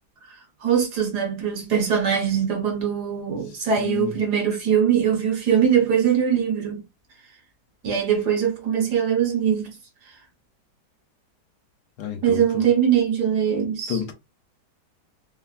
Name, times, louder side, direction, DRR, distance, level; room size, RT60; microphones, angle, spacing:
voice 1, 0.6-6.8 7.8-9.7 12.2-14.0, right 8 dB, 70° right, 1.5 m, -22 dB
voice 2, 3.8-4.2 12.0-12.7 13.9-14.1, left 8 dB, 80° left, 1.2 m, -30 dB
3.4 x 2.1 x 2.3 m
omnidirectional pair, 1.9 m